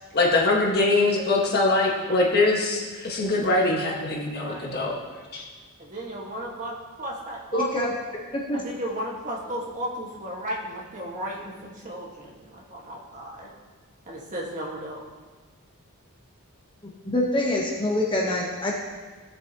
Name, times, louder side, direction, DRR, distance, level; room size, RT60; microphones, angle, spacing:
voice 1, 0.1-5.0 5.3-5.5, left 2 dB, 45° left, -2 dB, 1.7 m, -22 dB
voice 2, 4.3-4.8 5.8-7.7 8.5-13.5 14.1-15.0, equal, 35° right, -3 dB, 1.7 m, -34 dB
voice 3, 7.5-7.9 8.3-8.6 17.0-18.7, left 1 dB, 20° left, -3 dB, 1.1 m, -25 dB
16.5 x 7.0 x 3.0 m, 1.4 s
head